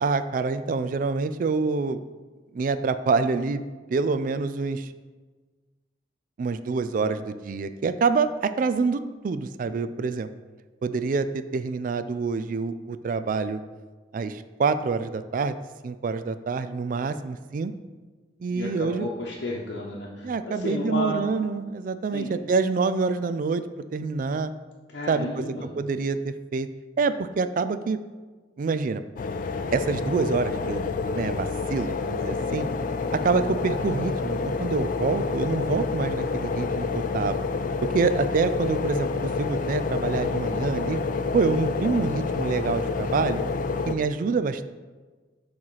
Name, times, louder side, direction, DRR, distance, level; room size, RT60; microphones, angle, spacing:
voice 1, 0.0-2.0 2.5-4.9 6.4-10.3 10.8-13.6 14.1-15.6 15.8-17.7 18.4-19.1 20.2-24.5 25.1-26.7 27.0-28.0 28.6-29.0 29.7-30.9 31.1-32.7 33.1-36.9 37.1-37.4 37.9-41.0 41.3-43.4 43.9-44.6, right 4 dB, 50° right, 12 dB, 0.3 m, -26 dB
voice 2, 18.5-21.3 22.1-22.3 24.9-25.7, left 1 dB, 85° left, -5 dB, 0.9 m, -32 dB
sound 1, 29.2-43.9, left 4 dB, 50° left, 0.4 m, -28 dB
7.2 x 3.1 x 5.6 m, 1.4 s
head